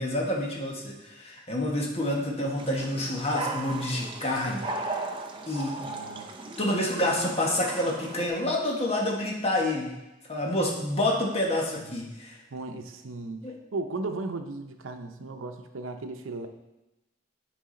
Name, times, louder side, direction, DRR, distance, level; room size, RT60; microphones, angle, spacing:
voice 1, 0.0-5.1 5.5-5.8 6.6-9.9 10.3-12.4 13.4-13.5, left 1 dB, 30° left, -1 dB, 1.2 m, -28 dB
sound 1, 2.6-8.3, right 2 dB, 25° right, 0.5 m, -37 dB
voice 2, 5.8-6.4 11.9-12.1 12.5-16.5, right 3 dB, 90° right, 6 dB, 0.7 m, -36 dB
8.8 x 4.8 x 3.8 m, 0.96 s
head